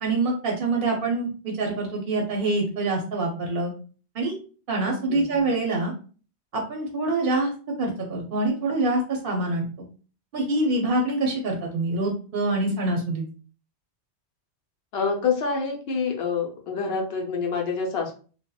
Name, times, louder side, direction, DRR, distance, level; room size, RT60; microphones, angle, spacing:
voice 1, 0.0-3.7 4.1-4.4 4.7-5.9 6.5-7.5 7.8-9.7 10.3-13.2, right 2 dB, 60° right, 0 dB, 0.7 m, -25 dB
voice 2, 5.1-5.4 14.9-18.1, left 5 dB, 65° left, 2 dB, 0.8 m, -27 dB
2.7 x 2.1 x 2.2 m, 0.39 s
omnidirectional pair, 1.2 m